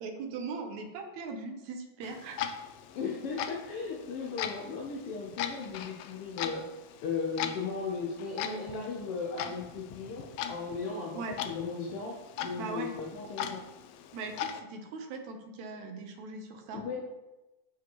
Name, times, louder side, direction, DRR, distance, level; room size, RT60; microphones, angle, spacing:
voice 1, 0.0-2.4 11.1-11.4 12.6-12.9 14.1-16.8, right 4 dB, 75° right, 4 dB, 2.1 m, -39 dB
Clock, 2.0-14.6, left 9 dB, 85° left, 1.4 m, -40 dB
voice 2, 2.9-6.6 7.0-12.2 12.4-13.6 16.7-17.0, left 4 dB, 70° left, 0 dB, 1.4 m, -36 dB
12.5 x 5.1 x 3.0 m, 1.1 s
omnidirectional pair, 3.4 m